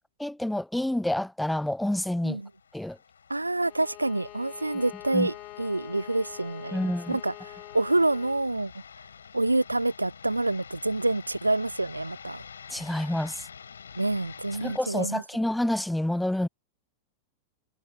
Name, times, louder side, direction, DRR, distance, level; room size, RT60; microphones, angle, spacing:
voice 1, 0.2-2.4 2.7-3.0 5.1-5.3 6.7-7.2 12.7-13.5 14.6-16.5, left 1 dB, 5° left, 0.3 m, -28 dB
sound 1, 2.2-14.8, left 6 dB, 70° left, 4.7 m, -48 dB
voice 2, 3.3-8.7 9.3-12.4 13.9-15.2, right 2 dB, 85° right, 0.9 m, -27 dB
Bowed string instrument, 3.6-8.5, left 18 dB, 40° left, 1.2 m, -45 dB
figure-of-eight pair, 90°, 0 cm